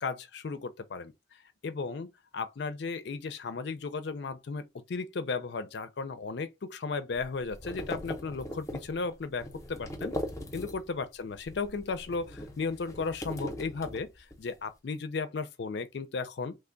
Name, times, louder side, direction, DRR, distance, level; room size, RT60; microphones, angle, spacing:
voice 1, 0.0-1.1 1.6-10.1 10.5-16.6, left 4 dB, 60° left, 0.4 m, -35 dB
sound 1, 7.1-11.0 11.3-14.5, equal, 15° left, 0.6 m, -40 dB
3.2 x 2.2 x 3.7 m
head